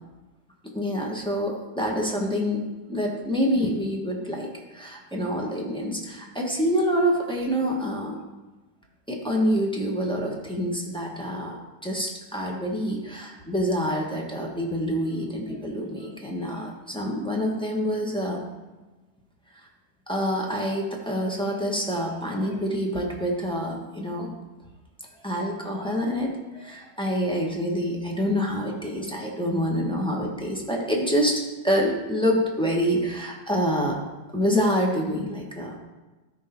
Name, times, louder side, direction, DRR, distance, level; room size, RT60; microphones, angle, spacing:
voice 1, 0.7-2.6 2.9-8.2 9.1-18.5 20.1-24.3 25.2-34.0 34.3-35.8, equal, 5° left, -3 dB, 1.1 m, -26 dB
13.0 x 4.6 x 4.4 m, 1.2 s
omnidirectional pair, 2.1 m